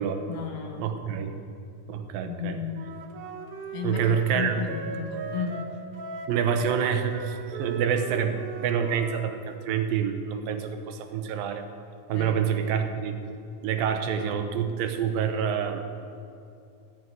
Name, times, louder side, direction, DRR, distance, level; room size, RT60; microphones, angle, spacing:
voice 1, 0.3-0.9 2.2-2.9 3.7-5.7 12.1-12.6, left 6 dB, 70° left, 2 dB, 2.9 m, -34 dB
voice 2, 0.8-1.3 1.9-2.6 3.8-4.6 6.3-8.4 8.6-11.7 12.1-13.2 13.6-15.8, right 7 dB, 85° right, 7 dB, 2.7 m, -27 dB
Wind instrument woodwind instrument, 2.7-9.3, right 5 dB, 65° right, 1.9 m, -38 dB
14.0 x 6.3 x 9.1 m, 2.6 s
omnidirectional pair, 3.9 m